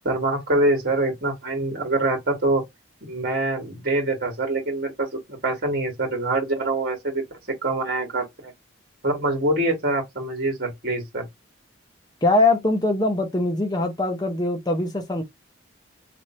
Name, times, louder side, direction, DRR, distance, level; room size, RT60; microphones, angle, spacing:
voice 1, 0.0-2.6 3.1-8.5 9.0-11.2, right 2 dB, 55° right, 1.6 m, -25 dB
voice 2, 12.2-15.2, left 2 dB, 20° left, 0.7 m, -22 dB
3.1 x 2.5 x 4.2 m
head